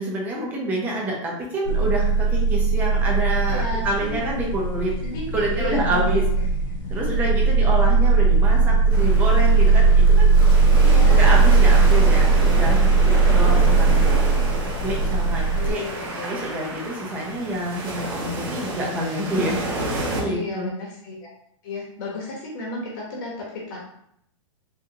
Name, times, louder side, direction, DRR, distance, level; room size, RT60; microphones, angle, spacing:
voice 1, 0.0-5.0 5.3-6.3 6.9-10.3 11.1-14.0 14.8-15.8 16.2-19.7 20.2-20.7, right 1 dB, 10° right, -2 dB, 0.5 m, -27 dB
sound 1, 1.7-15.7, right 4 dB, 70° left, 0.7 m, -18 dB
voice 2, 3.5-4.4 5.0-5.2 5.5-6.4 10.8-11.2 15.5-16.4 20.2-21.3 21.6-23.8, left 2 dB, 35° left, -3 dB, 0.9 m, -33 dB
sound 2, 8.9-20.2, right 1 dB, 45° right, 1.0 m, -30 dB
3.7 x 2.7 x 2.8 m, 0.72 s
hypercardioid pair, 170°, 17 cm